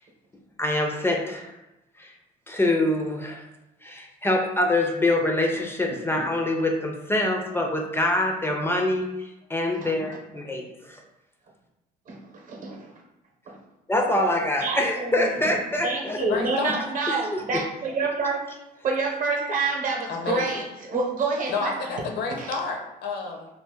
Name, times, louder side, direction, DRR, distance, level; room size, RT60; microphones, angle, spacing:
voice 1, 0.6-1.5 2.0-2.1 2.5-3.4 3.8-11.0 13.9-16.2 17.1-17.2 17.5-17.6, left 1 dB, 15° left, 1 dB, 0.3 m, -25 dB
voice 2, 12.1-12.9 13.5-13.6 14.6-15.4 15.8-18.5 18.8-21.9 22.3-22.5, right 3 dB, 50° right, 0 dB, 0.8 m, -28 dB
voice 3, 16.1-16.8 20.1-20.6 21.5-23.5, left 4 dB, 75° left, 3 dB, 0.6 m, -30 dB
2.6 x 2.2 x 3.5 m, 0.95 s
cardioid pair, 110°, 17 cm